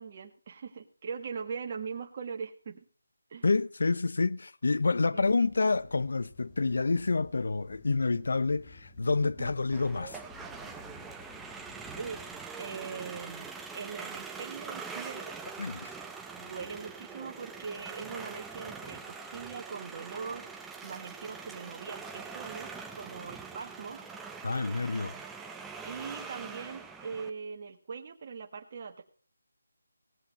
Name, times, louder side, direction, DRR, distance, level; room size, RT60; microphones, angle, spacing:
voice 1, 0.0-2.8 3.3-3.5 5.1-5.3 9.2-9.5 12.0-12.2 12.6-15.4 16.4-20.5 20.8-24.1 24.5-25.0 25.8-29.0, right 5 dB, 35° right, 1.6 m, -41 dB
voice 2, 3.4-10.2 15.6-15.9 24.4-25.2, left 3 dB, 65° left, 0.7 m, -28 dB
sound 1, 5.2-12.4, left 3 dB, 20° left, 2.2 m, -54 dB
sound 2, 9.7-27.3, right 5 dB, 5° right, 0.7 m, -43 dB
17.5 x 8.6 x 4.2 m
figure-of-eight pair, 165°, 0 cm